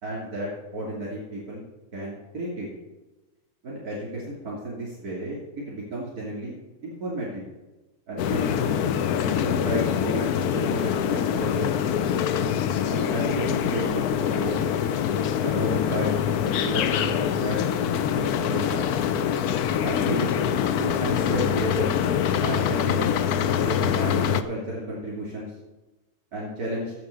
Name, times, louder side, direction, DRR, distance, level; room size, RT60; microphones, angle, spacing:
voice 1, 0.0-1.6 1.9-2.7 3.6-5.4 5.7-6.5 6.8-7.5 8.1-8.8 9.2-11.9 12.9-14.6 15.4-16.1 16.5-17.7 18.0-18.9 19.8-20.3 20.7-22.0 22.4-23.2 23.5-25.5 26.3-26.9, right 1 dB, 75° right, -6 dB, 3.3 m, -32 dB
sound 1, 8.2-24.4, left 8 dB, 80° left, 1.2 m, -24 dB
8.4 x 7.3 x 6.9 m, 1.1 s
omnidirectional pair, 1.6 m